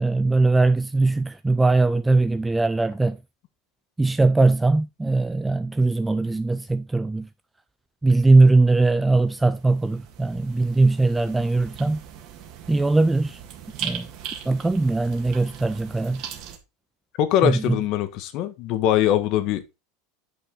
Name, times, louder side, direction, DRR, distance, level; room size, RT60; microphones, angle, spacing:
voice 1, 0.0-3.2 4.0-7.3 8.0-12.0 12.7-13.4 13.8-14.1 14.5-16.2 17.4-17.8, right 3 dB, 5° right, 0.4 m, -20 dB
sound 1, 9.0-16.6, right 9 dB, 45° right, 1.9 m, -39 dB
voice 2, 17.2-19.6, left 11 dB, 45° left, 1.3 m, -22 dB
8.9 x 5.8 x 3.9 m
supercardioid pair, 150°, 0 cm